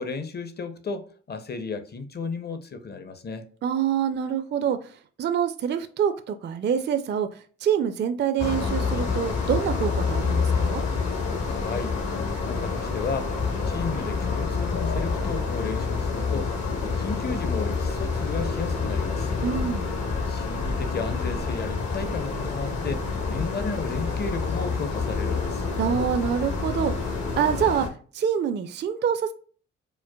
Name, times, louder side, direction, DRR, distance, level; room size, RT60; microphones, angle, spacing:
voice 1, 0.0-3.4 11.6-12.0 12.3-19.3 20.3-25.6, left 4 dB, 35° left, 0.6 m, -34 dB
voice 2, 3.6-4.9 5.2-10.8 19.4-20.0 25.8-29.3, right 8 dB, 35° right, 0.4 m, -26 dB
sound 1, 8.4-27.9, left 4 dB, 65° left, 1.0 m, -27 dB
4.4 x 2.1 x 2.2 m
supercardioid pair, 50°, 30 cm